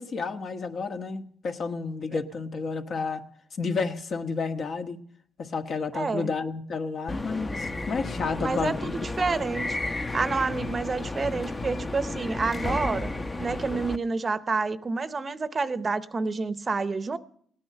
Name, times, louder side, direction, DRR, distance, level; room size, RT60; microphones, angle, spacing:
voice 1, 0.0-3.2 3.6-5.0 5.4-8.9, left 4 dB, 55° left, 6 dB, 1.5 m, -31 dB
voice 2, 5.9-6.3 8.4-13.1 13.4-17.2, right 4 dB, 35° right, 14 dB, 0.8 m, -29 dB
sound 1, 7.1-14.0, left 2 dB, 20° left, 0.8 m, -32 dB
17.5 x 9.6 x 6.5 m, 0.62 s
cardioid pair, 90°, 0 cm